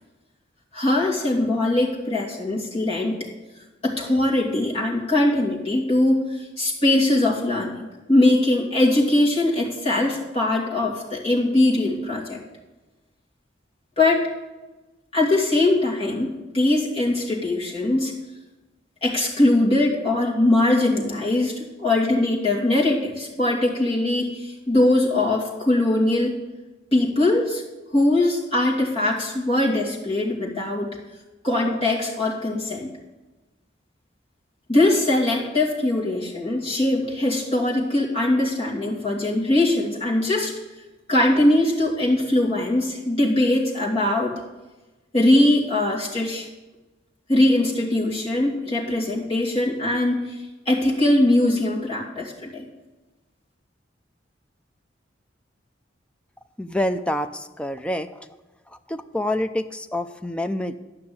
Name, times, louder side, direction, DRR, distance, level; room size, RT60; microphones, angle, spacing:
voice 1, 0.7-3.2 3.8-12.4 14.0-14.2 15.1-16.3 16.5-18.1 19.0-26.4 26.9-27.6 27.9-31.0 31.4-32.9 34.7-40.5 41.1-44.3 45.1-46.5 47.3-50.3 50.7-52.7, left 1 dB, 30° left, -4 dB, 2.6 m, -21 dB
voice 2, 56.6-58.1 58.9-60.7, left 1 dB, 5° left, 8 dB, 0.5 m, -27 dB
11.5 x 5.8 x 8.6 m, 1.1 s
head